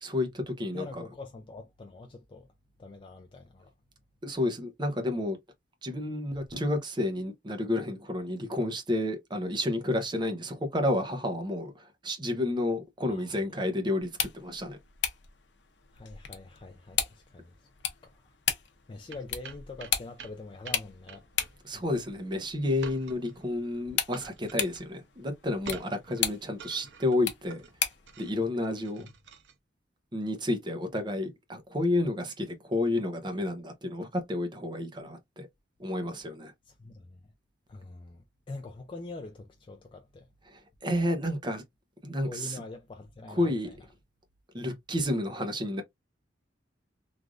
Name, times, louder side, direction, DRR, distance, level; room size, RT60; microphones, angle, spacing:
voice 1, 0.0-1.0 4.2-5.4 5.8-14.8 21.6-27.6 28.2-29.1 30.1-35.5 35.8-36.5 40.5-41.6 42.0-42.6 43.3-43.7 44.5-45.8, left 1 dB, 25° right, 0.6 m, -30 dB
voice 2, 0.7-2.5 2.8-3.7 13.1-13.3 15.9-17.7 18.0-18.3 18.9-21.3 21.7-21.9 36.7-37.3 37.7-40.3 42.2-43.8, left 3 dB, 30° left, 0.4 m, -44 dB
sound 1, 14.0-28.1, left 9 dB, 75° left, 0.6 m, -36 dB
sound 2, 19.1-29.5, right 5 dB, 70° right, 0.6 m, -48 dB
3.2 x 2.5 x 2.4 m
head